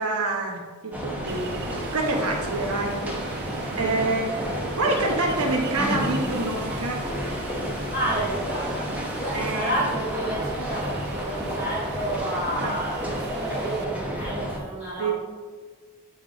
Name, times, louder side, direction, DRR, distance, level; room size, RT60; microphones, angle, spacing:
voice 1, 0.0-1.6 1.9-3.0 3.7-4.4 4.7-7.1 9.3-9.7 12.5-12.8 15.0-15.1, right 2 dB, 75° right, 2 dB, 1.0 m, -27 dB
sound 1, 0.9-14.6, equal, 5° right, 0.9 m, -31 dB
Ocean, 1.3-13.8, right 5 dB, 50° right, 0.4 m, -38 dB
voice 2, 7.7-15.1, right 1 dB, 25° left, -12 dB, 1.9 m, -30 dB
8.7 x 3.3 x 3.9 m, 1.4 s
head